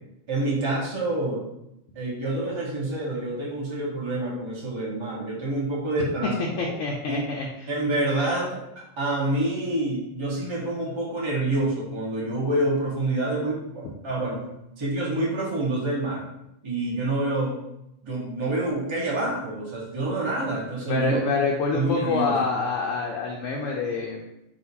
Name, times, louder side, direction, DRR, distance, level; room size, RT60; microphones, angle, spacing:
voice 1, 0.3-1.4 1.9-6.3 7.1-7.2 7.7-14.4 14.8-16.2 16.6-17.6 18.0-21.4 21.7-22.4, right 2 dB, 25° right, -5 dB, 0.9 m, -27 dB
voice 2, 6.4-7.5 20.9-24.2, left 4 dB, 75° left, -1 dB, 0.9 m, -26 dB
3.9 x 2.5 x 4.1 m, 0.84 s
omnidirectional pair, 1.3 m